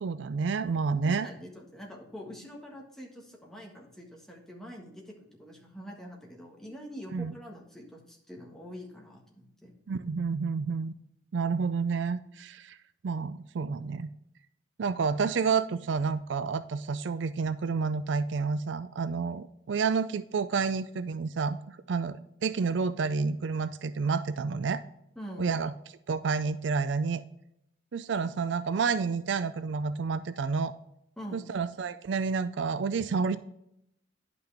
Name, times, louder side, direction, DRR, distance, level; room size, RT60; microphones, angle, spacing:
voice 1, 0.0-1.3 7.1-7.3 9.9-10.9 11.3-12.8 13.0-14.1 14.8-24.8 25.4-25.7 26.1-27.2 27.9-30.7 31.3-33.4, right 5 dB, 70° right, 13 dB, 0.4 m, -29 dB
voice 2, 1.0-9.7 25.1-25.5 31.2-31.4, equal, 5° left, -1 dB, 1.5 m, -45 dB
10.5 x 5.8 x 3.4 m, 0.78 s
head